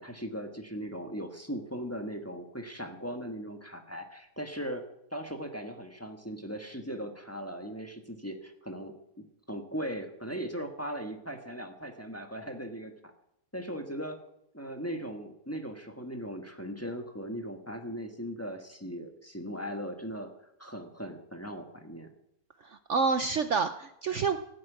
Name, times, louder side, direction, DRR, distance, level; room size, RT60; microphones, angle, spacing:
voice 1, 0.0-4.8 5.1-13.1 13.5-14.2 14.5-20.3 20.6-22.1, equal, 10° left, 5 dB, 1.4 m, -38 dB
voice 2, 22.6-24.4, right 5 dB, 60° right, 10 dB, 0.9 m, -28 dB
17.0 x 7.7 x 9.3 m, 0.82 s
omnidirectional pair, 1.7 m